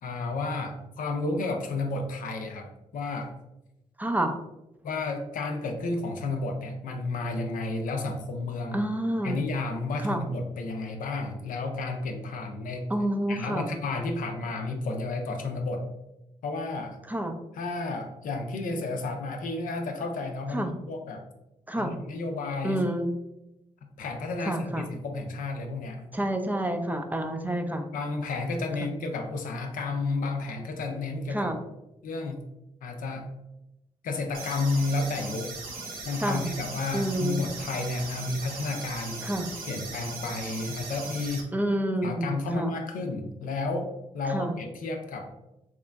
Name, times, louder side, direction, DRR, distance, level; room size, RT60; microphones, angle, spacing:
voice 1, 0.0-3.3 4.8-8.8 9.2-12.9 13.3-15.8 16.4-17.0 17.5-21.2 21.7-22.8 24.0-26.0 27.9-31.5 32.0-32.5 32.8-33.3 34.0-35.5 36.0-39.2 39.7-41.5 42.0-45.3, left 3 dB, 70° left, 3 dB, 0.5 m, -32 dB
voice 2, 4.0-4.3 8.7-9.4 10.0-10.2 12.9-13.7 17.1-17.3 20.5-20.7 21.7-21.9 22.6-23.1 24.4-24.9 26.1-27.9 31.3-31.6 36.2-36.5 36.9-37.5 39.2-39.5 41.5-42.7 44.3-44.5, right 1 dB, 10° right, 5 dB, 0.4 m, -28 dB
sound 1, 34.3-41.4, right 3 dB, 90° right, 0.5 m, -39 dB
2.9 x 2.4 x 2.2 m, 0.92 s
supercardioid pair, 45°, 14 cm